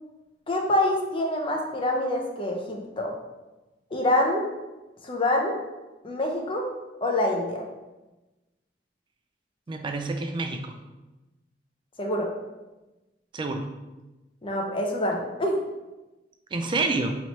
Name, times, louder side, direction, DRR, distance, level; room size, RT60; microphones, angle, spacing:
voice 1, 0.5-3.1 3.9-4.5 5.0-5.6 6.0-6.7 7.0-7.6 12.0-12.3 14.4-15.6, left 1 dB, 30° left, 0 dB, 0.6 m, -26 dB
voice 2, 9.7-10.8 13.3-13.7 16.5-17.2, right 3 dB, 25° right, 5 dB, 0.3 m, -28 dB
3.0 x 3.0 x 4.1 m, 1.1 s
head